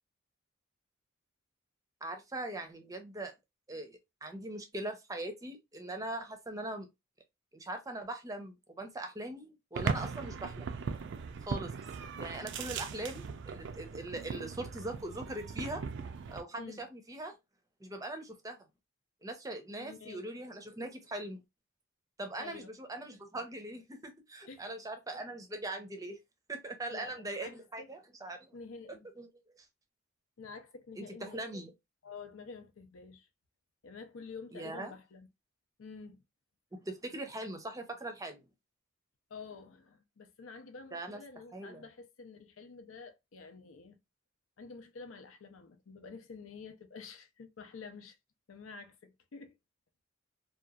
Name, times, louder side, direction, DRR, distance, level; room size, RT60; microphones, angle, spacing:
voice 1, 2.0-3.3 3.7-6.9 7.5-10.7 11.5-11.7 12.2-15.8 16.3-17.3 17.8-18.6 19.2-21.4 22.2-26.2 26.5-28.5 29.2-29.3 31.0-31.7 34.5-34.9 36.8-38.4 40.9-41.2 41.5-41.8, right 1 dB, 15° right, 0.5 m, -41 dB
sound 1, 9.7-16.4, right 5 dB, 60° right, 0.3 m, -39 dB
voice 2, 19.8-20.2 22.4-22.7 24.5-24.7 26.9-27.9 28.5-29.1 30.4-31.4 32.0-33.3 33.8-35.3 35.8-36.2 39.3-44.0 44.6-48.2 48.5-49.6, left 4 dB, 80° left, 0.5 m, -49 dB
2.8 x 2.3 x 2.3 m
head